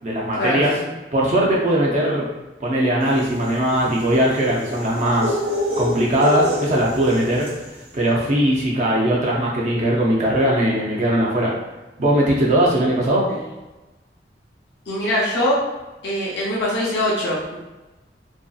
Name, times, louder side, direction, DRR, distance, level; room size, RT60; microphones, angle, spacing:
voice 1, 0.0-0.7 1.1-2.3 2.6-5.4 5.8-7.5 7.9-11.5 12.0-13.3, right 1 dB, 45° right, -3 dB, 0.5 m, -19 dB
sound 1, 3.1-7.7, equal, 90° right, 1.0 m, -27 dB
voice 2, 14.9-15.6 16.0-17.6, left 1 dB, 65° left, -6 dB, 0.6 m, -22 dB
2.9 x 2.6 x 2.3 m, 1.1 s
head